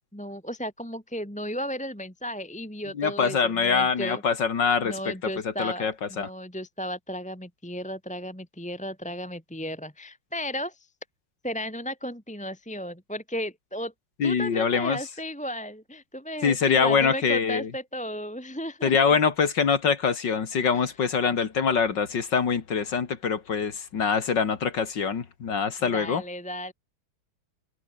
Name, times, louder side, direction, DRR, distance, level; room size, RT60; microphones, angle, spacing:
voice 1, 0.0-4.2 4.8-10.9 11.4-13.9 14.2-19.1 20.7-20.9 25.8-26.7, equal, 5° left, 2.3 m, -35 dB
voice 2, 2.9-5.1 5.6-6.3 14.2-15.0 16.4-17.7 18.8-26.2, left 6 dB, 60° left, 2.5 m, -24 dB
open air
omnidirectional pair, 2.2 m